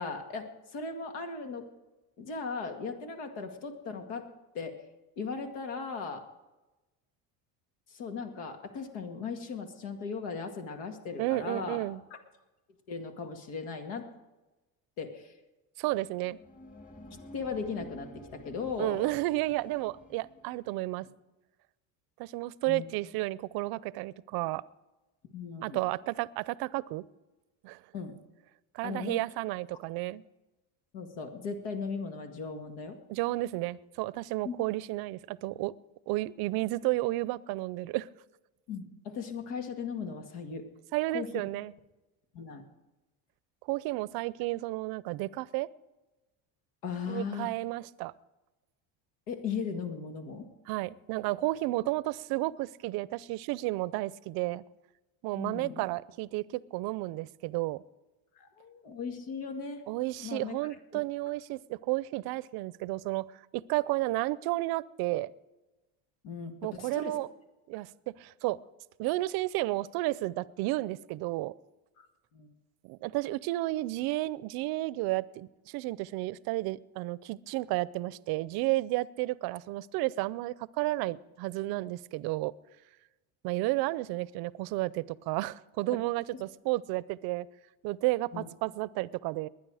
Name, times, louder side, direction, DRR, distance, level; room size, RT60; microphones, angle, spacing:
voice 1, 0.0-1.7 2.2-4.3 4.5-4.8 5.2-6.2 7.9-11.9 12.1-12.2 12.9-14.1 15.0-15.3 17.1-19.0 22.7-22.8 25.3-25.8 27.9-28.1 28.8-29.2 30.9-33.0 34.4-34.5 38.7-40.7 41.1-41.3 42.3-42.6 46.8-47.5 49.3-50.5 55.4-55.9 58.4-59.8 60.2-60.6 60.9-61.0 66.2-67.2 72.0-72.1 72.3-72.5 86.3-86.4 88.3-88.4, left 5 dB, 75° left, 5 dB, 2.2 m, -37 dB
voice 2, 11.2-12.0 15.8-16.4 18.8-21.1 22.2-24.6 25.6-27.0 27.6-27.8 28.7-30.2 33.1-35.7 36.1-38.1 40.9-41.7 43.7-45.7 47.1-48.1 50.7-54.6 55.2-57.8 59.9-63.3 63.5-65.3 66.6-67.3 67.7-68.6 69.0-71.5 72.8-82.5 83.4-87.5 87.8-89.5, right 19 dB, 65° right, 20 dB, 0.6 m, -32 dB
sound 1, 16.1-20.8, equal, 20° left, 2.5 m, -51 dB
21.0 x 9.8 x 4.9 m, 1.1 s
supercardioid pair, 105°, 40 cm